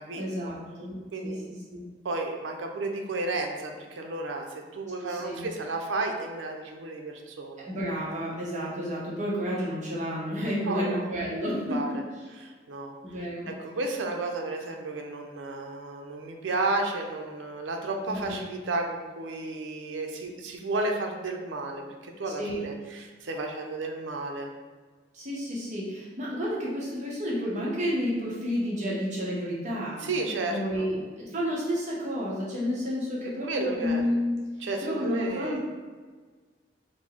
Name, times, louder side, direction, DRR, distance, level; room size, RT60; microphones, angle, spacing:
voice 1, 0.1-1.3 1.7-1.9 5.0-5.5 7.6-12.0 13.0-13.5 18.1-18.4 22.4-22.6 25.1-30.0 30.5-34.4 34.8-35.6, equal, 40° right, -6 dB, 0.9 m, -31 dB
voice 2, 2.0-7.7 10.7-11.1 11.7-11.9 12.4-13.0 13.5-24.5 30.0-30.9 33.4-34.0 34.6-35.6, right 2 dB, 85° right, 3 dB, 0.5 m, -32 dB
4.4 x 2.1 x 4.3 m, 1.5 s
head